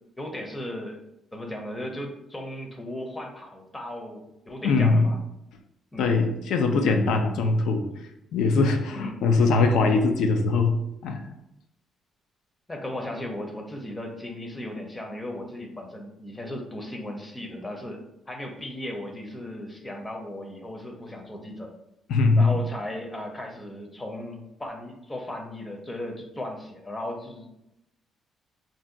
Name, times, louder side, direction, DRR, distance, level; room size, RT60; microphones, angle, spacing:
voice 1, 0.2-1.0 1.3-5.2 5.9-6.1 8.9-9.2 12.7-18.0 18.3-21.7 22.4-27.5, left 1 dB, 15° left, 2 dB, 0.6 m, -36 dB
voice 2, 4.6-5.1 6.0-7.9 8.3-11.2 22.1-22.6, left 3 dB, 80° left, 5 dB, 0.4 m, -21 dB
2.5 x 2.2 x 3.7 m, 0.86 s
cardioid pair, 90°, 0 cm